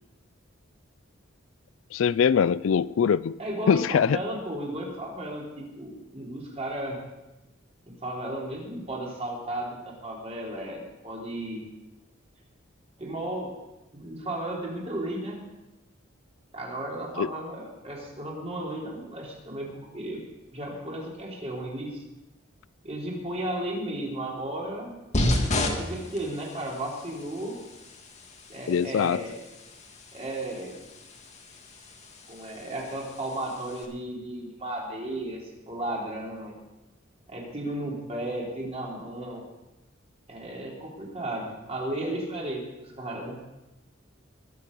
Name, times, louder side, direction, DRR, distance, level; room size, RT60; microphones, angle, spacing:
voice 1, 1.9-3.4 3.7-4.2 17.2-17.3 28.7-29.2, left 7 dB, 80° left, 0.4 m, -22 dB
voice 2, 3.4-7.0 7.9-11.6 13.0-13.5 13.9-15.4 16.5-20.2 20.5-22.0 22.8-25.0 25.6-27.6 28.5-29.4 30.1-30.7 32.3-36.5 37.3-39.4 40.3-43.4, right 1 dB, 35° right, 3.6 m, -34 dB
sound 1, 25.1-33.8, left 1 dB, 35° left, 1.8 m, -33 dB
21.5 x 7.6 x 5.5 m
head